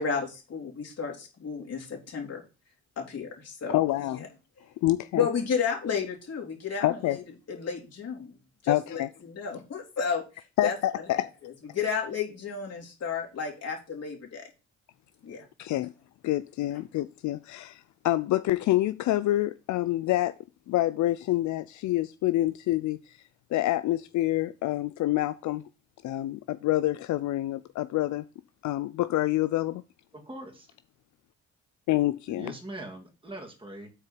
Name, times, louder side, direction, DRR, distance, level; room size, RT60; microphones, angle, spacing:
voice 1, 0.0-2.4 3.0-3.8 4.1-4.3 4.6-4.7 5.1-8.4 8.6-14.5 15.2-15.4, left 6 dB, 55° left, 3.3 m, -32 dB
voice 2, 3.7-4.2 4.8-5.2 6.8-7.2 8.7-9.1 10.6-11.2 15.6-15.9 16.2-20.4 20.7-23.2 23.5-25.6 26.0-28.2 28.6-29.8 31.9-32.5, left 15 dB, 75° left, 0.5 m, -27 dB
voice 3, 30.1-30.7 32.3-33.9, right 1 dB, 15° right, 2.5 m, -41 dB
6.6 x 4.5 x 6.8 m
cardioid pair, 80°, 29 cm